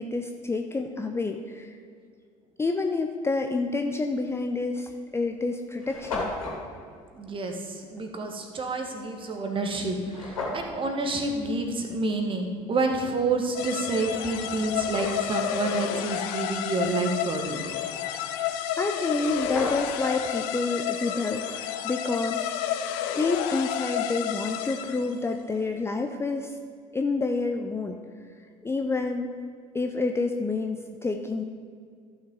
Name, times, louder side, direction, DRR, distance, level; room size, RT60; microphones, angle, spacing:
voice 1, 0.0-1.8 2.6-6.3 18.3-22.5 23.2-26.6 26.9-28.0 28.6-29.3 29.7-31.4, left 3 dB, 15° left, 5 dB, 0.6 m, -28 dB
sound 1, 4.2-4.4 5.1-5.2 5.4-5.5 5.7-6.6 10.0-10.7 13.6-13.7 14.3-15.4 18.8-18.9 19.1-20.1, left 3 dB, 75° left, 2.4 m, -35 dB
voice 2, 7.1-17.6, right 3 dB, 30° right, 3 dB, 1.5 m, -29 dB
sound 2, 13.5-25.2, left 10 dB, 55° left, 0.6 m, -31 dB
14.5 x 6.4 x 3.8 m, 2.1 s
figure-of-eight pair, 60°, 18 cm